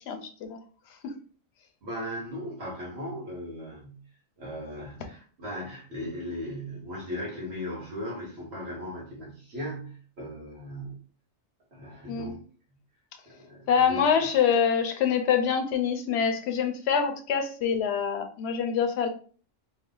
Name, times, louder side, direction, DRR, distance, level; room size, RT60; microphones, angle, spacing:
voice 1, 0.1-0.6 1.0-1.1 12.1-12.3 13.7-19.1, left 7 dB, 65° left, 6 dB, 0.8 m, -25 dB
voice 2, 1.8-4.0 4.4-11.0 11.7-12.4 13.3-14.3, equal, 55° right, -4 dB, 1.3 m, -37 dB
3.2 x 2.1 x 3.7 m, 0.41 s
omnidirectional pair, 1.3 m